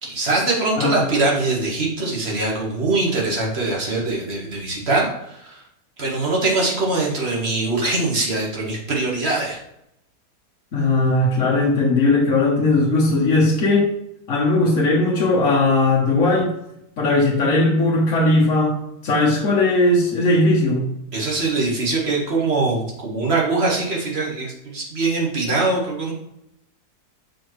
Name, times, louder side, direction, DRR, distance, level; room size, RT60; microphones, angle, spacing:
voice 1, 0.0-5.6 6.0-9.6 21.1-26.1, right 3 dB, 40° right, -2 dB, 1.6 m, -22 dB
voice 2, 10.7-13.9 14.3-16.5 17.0-20.9, left 2 dB, 55° left, -4 dB, 1.3 m, -18 dB
6.8 x 5.1 x 3.1 m, 0.81 s
omnidirectional pair, 1.7 m